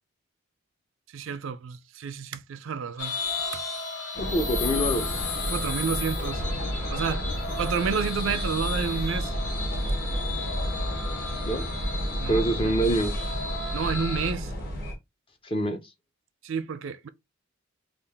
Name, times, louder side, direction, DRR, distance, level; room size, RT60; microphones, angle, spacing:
voice 1, 1.1-3.2 3.5-3.6 5.4-6.4 6.9-7.3 7.6-9.3 12.2-12.7 13.7-14.5 16.4-17.1, right 6 dB, 60° right, 0.4 m, -30 dB
sound 1, 3.0-14.3, left 4 dB, 70° left, 1.1 m, -34 dB
sound 2, 4.1-14.9, equal, 45° left, 1.3 m, -31 dB
voice 2, 4.2-5.4 11.5-11.7 12.3-13.1 15.4-15.8, right 1 dB, 25° left, 0.6 m, -26 dB
sound 3, 6.2-8.0 8.8-9.8, equal, 90° left, 1.8 m, -37 dB
3.7 x 2.4 x 3.4 m
head